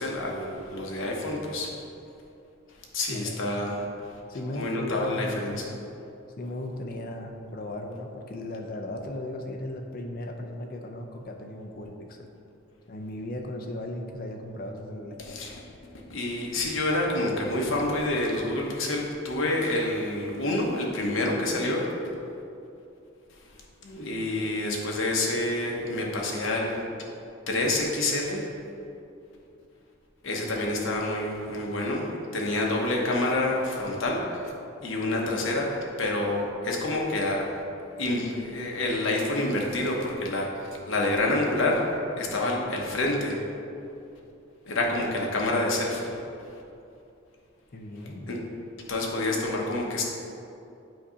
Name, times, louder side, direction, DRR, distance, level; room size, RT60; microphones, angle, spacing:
voice 1, 0.0-1.7 2.8-3.9 4.5-5.7 15.2-15.6 15.9-21.9 23.3-26.8 27.5-28.5 30.2-34.2 34.8-37.5 38.0-43.4 44.7-46.1 46.4-46.5 48.3-48.4 48.8-50.0, left 2 dB, 70° left, -1 dB, 0.9 m, -28 dB
voice 2, 4.3-5.5 6.4-12.3 12.9-15.2 47.7-48.4, left 1 dB, 45° left, 2 dB, 0.5 m, -36 dB
7.6 x 2.8 x 5.0 m, 2.7 s
head